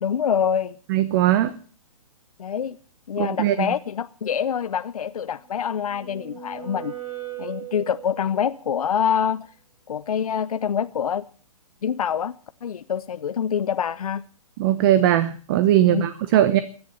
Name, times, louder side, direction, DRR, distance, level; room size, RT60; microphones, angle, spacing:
voice 1, 0.0-0.8 2.4-2.8 3.1-6.9 7.4-9.5 9.9-11.3 11.8-14.2 15.8-16.1, left 8 dB, 75° left, 0.8 m, -26 dB
voice 2, 0.9-1.5 3.2-3.7 14.6-16.6, right 12 dB, 35° right, 1.0 m, -19 dB
sound 1, 5.4-8.5, right 10 dB, 85° right, 5.7 m, -38 dB
16.5 x 11.0 x 7.0 m
hypercardioid pair, 140°, 19 cm